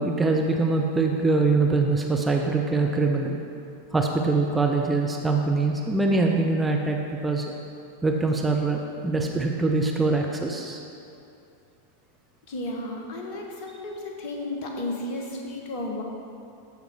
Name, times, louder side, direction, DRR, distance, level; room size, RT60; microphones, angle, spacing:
voice 1, 0.0-3.4 3.9-7.5 8.0-10.8, right 3 dB, 10° right, 1 dB, 0.6 m, -23 dB
voice 2, 12.5-16.0, left 2 dB, 45° left, 0 dB, 1.6 m, -33 dB
14.0 x 5.2 x 4.8 m, 2.6 s
figure-of-eight pair, 90°, 0 cm